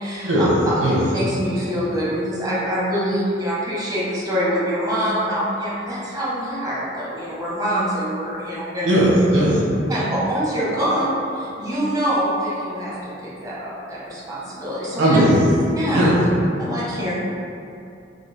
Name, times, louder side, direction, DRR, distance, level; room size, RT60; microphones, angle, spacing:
voice 1, 0.0-0.3 0.7-0.8 1.1-9.0 9.9-15.2 15.8-16.2 16.6-17.1, equal, 20° right, -7 dB, 0.8 m, -25 dB
voice 2, 8.8-9.6 15.0-15.3 15.9-16.2, right 1 dB, 85° right, -6 dB, 1.0 m, -17 dB
3.8 x 3.3 x 2.2 m, 2.6 s
head